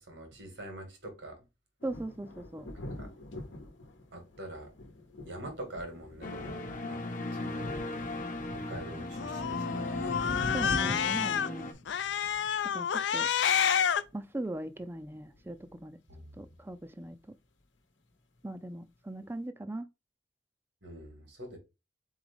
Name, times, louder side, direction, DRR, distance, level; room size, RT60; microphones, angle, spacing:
voice 1, 0.0-1.4 3.0-3.1 4.1-4.7 5.2-7.0 7.3-7.8 8.5-9.9 16.1-16.3 20.8-21.6, right 1 dB, 80° right, 1.9 m, -44 dB
sound 1, 1.8-13.2 13.6-14.1 14.8-14.9 15.1-15.6, left 1 dB, 90° left, 1.0 m, -44 dB
voice 2, 1.8-2.7 10.5-11.7 12.7-13.3 14.1-16.0 16.4-17.2 18.4-19.8, right 1 dB, 10° right, 0.4 m, -39 dB
sound 2, 6.2-11.7, left 1 dB, 45° left, 0.8 m, -37 dB
Cat, 9.1-11.5 11.9-14.0, left 8 dB, 70° left, 0.4 m, -29 dB
4.3 x 3.6 x 3.4 m
head